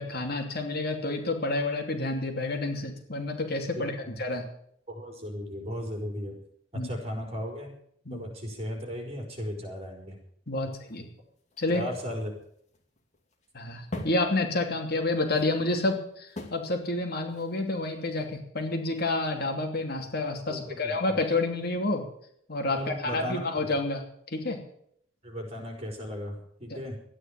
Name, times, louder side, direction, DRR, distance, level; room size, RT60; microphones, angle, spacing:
voice 1, 0.0-4.5 6.7-6.9 8.1-8.2 10.5-11.1 11.6-11.8 13.5-22.0 22.5-24.6, left 2 dB, 55° left, 3 dB, 2.8 m, -29 dB
voice 2, 3.7-4.4 4.9-6.4 6.7-7.7 8.1-10.2 11.7-12.3 20.5-20.9 22.7-23.7 25.2-27.0, equal, 35° right, 2 dB, 4.9 m, -36 dB
sound 1, 10.7-18.4, left 1 dB, 40° left, 2.6 m, -44 dB
13.5 x 10.0 x 8.9 m, 0.67 s
head